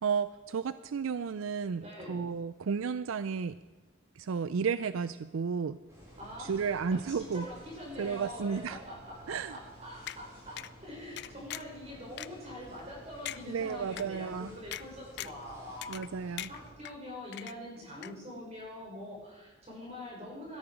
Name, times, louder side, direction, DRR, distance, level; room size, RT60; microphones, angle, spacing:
voice 1, 0.0-1.8 2.1-3.5 4.2-5.8 6.4-7.5 8.0-8.8 9.3-9.5 13.5-14.5 15.9-16.5, right 6 dB, 75° right, 14 dB, 0.4 m, -32 dB
voice 2, 1.8-2.2 6.2-6.8 7.1-9.4 9.8-20.6, left 1 dB, 30° right, -3 dB, 5.7 m, -44 dB
sound 1, 5.9-16.7, equal, 15° right, 5.8 m, -53 dB
sound 2, 10.1-10.2 10.6-10.7 11.2-11.8 12.2-12.3 12.8-12.9 13.3-13.4 14.0-14.1 14.7-14.8 15.2-15.4 15.8-16.1 16.4-16.9 17.3-17.8 18.0-18.1, left 12 dB, 50° left, 0.4 m, -40 dB
17.0 x 13.0 x 5.0 m, 1.2 s
head